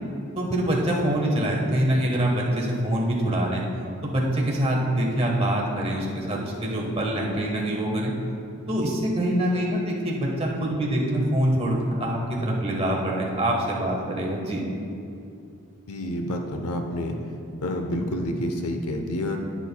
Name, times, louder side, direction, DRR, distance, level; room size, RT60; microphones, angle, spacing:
voice 1, 0.4-3.6 4.0-8.1 8.7-14.6, right 1 dB, 25° right, -2 dB, 1.3 m, -25 dB
voice 2, 15.9-17.2 17.6-19.4, left 1 dB, 85° left, 4 dB, 0.8 m, -28 dB
10.5 x 10.0 x 2.3 m, 2.5 s
head